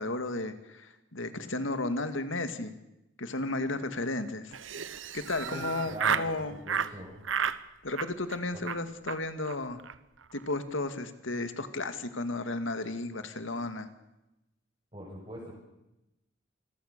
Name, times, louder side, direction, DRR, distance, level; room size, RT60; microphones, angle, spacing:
voice 1, 0.0-2.8 3.2-4.5 5.1-6.6 7.8-9.8 10.3-13.9, left 2 dB, 80° left, 9 dB, 2.2 m, -33 dB
Laughter, 4.5-6.3 6.7-6.9 7.2-7.6 7.9-8.4 8.7-8.8 9.1-9.2 9.5-9.6 9.8-10.0 10.2-10.5, right 7 dB, 80° right, 1.0 m, -32 dB
voice 2, 5.5-7.2 8.5-8.7 14.9-15.5, equal, 30° right, -6 dB, 6.9 m, -43 dB
28.0 x 21.5 x 6.8 m, 0.94 s
head